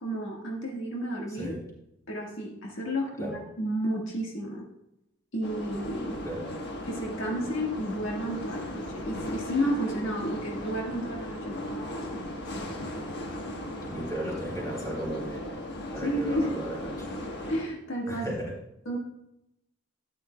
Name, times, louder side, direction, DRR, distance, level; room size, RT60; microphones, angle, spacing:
voice 1, 0.0-1.5 2.1-4.6 5.3-6.2 6.8-12.2 16.0-16.6 17.5-18.2 18.8-19.0, equal, 75° left, -1 dB, 1.6 m, -32 dB
sound 1, 5.4-17.6, left 1 dB, 60° left, 1.3 m, -37 dB
voice 2, 13.9-15.6 15.9-17.1 18.1-18.5, right 1 dB, 15° left, -3 dB, 3.4 m, -35 dB
13.0 x 9.9 x 2.3 m, 0.84 s
head